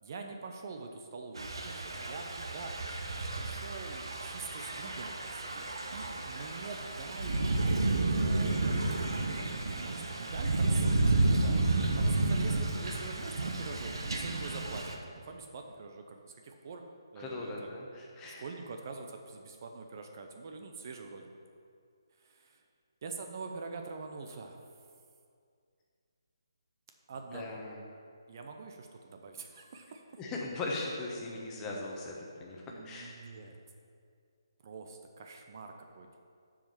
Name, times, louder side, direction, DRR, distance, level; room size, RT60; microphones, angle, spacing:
voice 1, 0.0-2.7 3.3-5.7 5.9-7.5 8.2-9.1 9.6-11.6 12.0-16.8 17.1-17.8 18.2-21.3 22.2-22.6 23.0-24.6 27.1-27.6 28.3-30.0 32.7-33.6 34.6-36.2, right 4 dB, 45° right, 4 dB, 0.7 m, -45 dB
Thunder / Rain, 1.4-15.0, right 2 dB, 75° right, 1.0 m, -31 dB
voice 2, 17.2-18.4 27.3-27.8 30.2-32.1 32.4-32.6 32.8-33.1, left 2 dB, 15° left, -2 dB, 1.1 m, -39 dB
7.2 x 4.9 x 7.1 m, 2.3 s
figure-of-eight pair, 150°, 2 cm